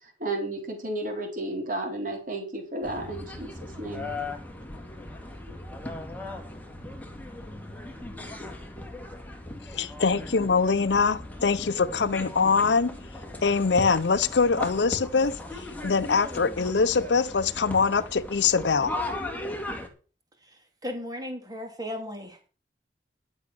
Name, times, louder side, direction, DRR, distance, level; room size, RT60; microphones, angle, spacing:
voice 1, 0.0-3.5 3.8-4.1, right 2 dB, 50° right, 4.2 m, -32 dB
sound 1, 2.8-19.9, left 1 dB, 10° left, 2.1 m, -38 dB
voice 2, 9.7-13.0 13.4-18.9, left 5 dB, 75° left, 0.6 m, -23 dB
voice 3, 20.4-22.4, left 1 dB, 20° right, 3.1 m, -36 dB
12.0 x 7.2 x 6.2 m
head